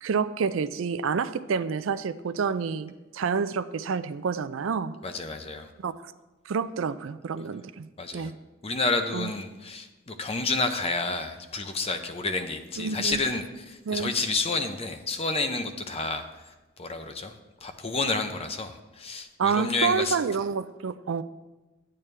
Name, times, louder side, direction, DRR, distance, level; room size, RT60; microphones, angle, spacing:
voice 1, 0.0-4.9 5.8-6.1 6.5-7.9 8.1-8.3 9.1-9.3 12.8-13.3 13.9-14.1 19.4-21.2, right 5 dB, 75° right, 13 dB, 0.4 m, -28 dB
voice 2, 5.0-5.7 8.0-8.3 8.6-16.3 16.8-17.3 17.6-20.2, left 3 dB, 30° left, 7 dB, 0.7 m, -30 dB
10.5 x 8.7 x 3.3 m, 1.1 s
head